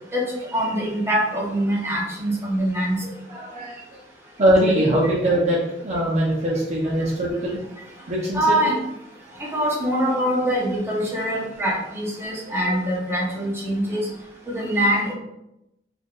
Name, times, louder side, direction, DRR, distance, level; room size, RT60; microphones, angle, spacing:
voice 1, 0.1-3.0 8.3-8.7 9.4-14.1 14.5-15.1, equal, 15° right, -5 dB, 0.9 m, -23 dB
voice 2, 3.0-4.0 4.4-7.6 8.1-8.8 12.7-12.8, right 1 dB, 40° right, -4 dB, 0.6 m, -22 dB
4.1 x 3.3 x 2.4 m, 0.85 s
head